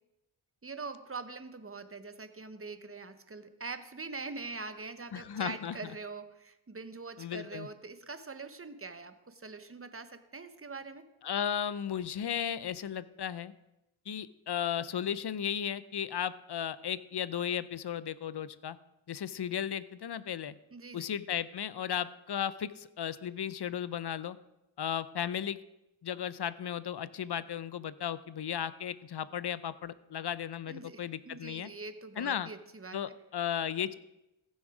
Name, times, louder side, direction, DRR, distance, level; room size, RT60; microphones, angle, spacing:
voice 1, 0.6-11.1 20.7-21.1 30.7-33.2, right 4 dB, 25° right, 10 dB, 0.9 m, -43 dB
voice 2, 5.1-5.8 7.2-7.7 11.2-13.5 14.1-18.8 19.1-20.5 20.9-24.4 24.8-25.6 26.0-31.7 32.2-32.5 32.9-33.9, left 9 dB, 55° left, 16 dB, 0.6 m, -35 dB
15.0 x 6.4 x 4.9 m, 0.92 s
wide cardioid pair, 55°, 48 cm